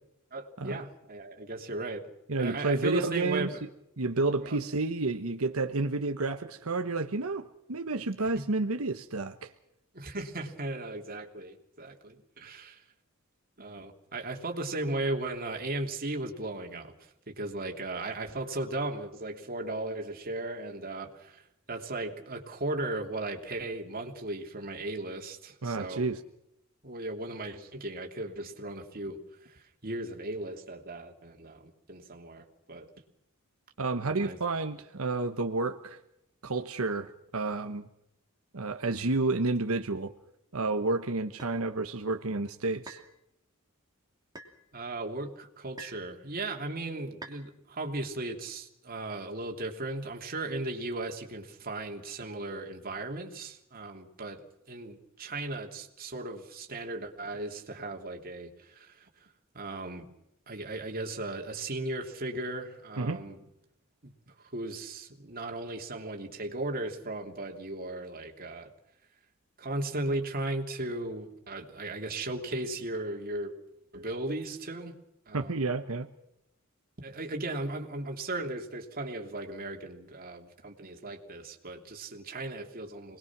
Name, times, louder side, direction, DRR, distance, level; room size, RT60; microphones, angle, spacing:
voice 1, 0.3-2.1 2.4-3.6 4.4-4.6 8.3-8.5 9.9-12.8 13.6-16.9 17.3-21.4 21.7-26.1 26.8-32.9 34.0-34.4 44.7-59.1 59.5-60.0 60.5-63.4 64.0-64.1 64.5-68.7 69.6-73.5 73.9-74.9 75.3-75.6 77.0-83.2, right 2 dB, 45° right, 2 dB, 3.1 m, -36 dB
voice 2, 2.3-3.5 4.0-9.5 25.6-26.2 33.8-36.0 36.4-37.9 38.5-40.1 40.5-43.0 63.0-63.2 75.3-76.1, right 3 dB, 90° right, 5 dB, 1.2 m, -30 dB
sound 1, 41.4-41.6 42.9-43.1 44.3-44.6 45.8-46.1 47.2-47.4, right 2 dB, 20° right, 2.9 m, -45 dB
27.0 x 21.0 x 6.1 m, 0.80 s
head